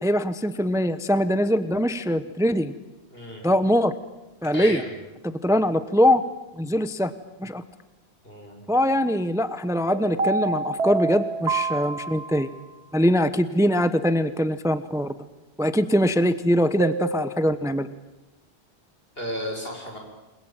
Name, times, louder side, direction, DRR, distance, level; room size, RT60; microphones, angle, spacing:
voice 1, 0.0-2.7 3.4-3.9 4.4-4.8 5.2-6.2 6.6-7.1 7.4-7.6 8.7-12.5 12.9-15.1 15.6-17.9, equal, 5° right, 12 dB, 0.9 m, -22 dB
voice 2, 3.1-3.5 4.5-4.9 8.2-8.6 19.1-20.0, equal, 60° left, 1 dB, 6.9 m, -33 dB
sound 1, 9.9-12.6 16.8-17.2, right 4 dB, 75° right, 1.6 m, -28 dB
28.5 x 21.5 x 9.0 m, 1.0 s
omnidirectional pair, 1.1 m